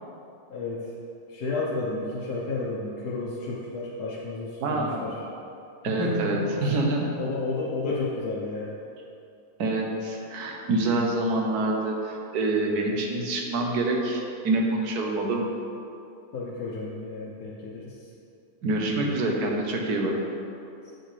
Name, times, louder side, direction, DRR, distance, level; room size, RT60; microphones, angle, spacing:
voice 1, 0.5-0.9 1.3-5.2 5.8-6.7 7.2-8.8 16.3-18.1 19.0-19.3, left 3 dB, 80° left, -6 dB, 1.4 m, -32 dB
voice 2, 4.6-5.1 5.8-7.1 9.6-15.5 18.6-20.2, right 2 dB, 85° right, 1 dB, 1.4 m, -26 dB
8.6 x 6.5 x 3.3 m, 2.6 s
omnidirectional pair, 1.6 m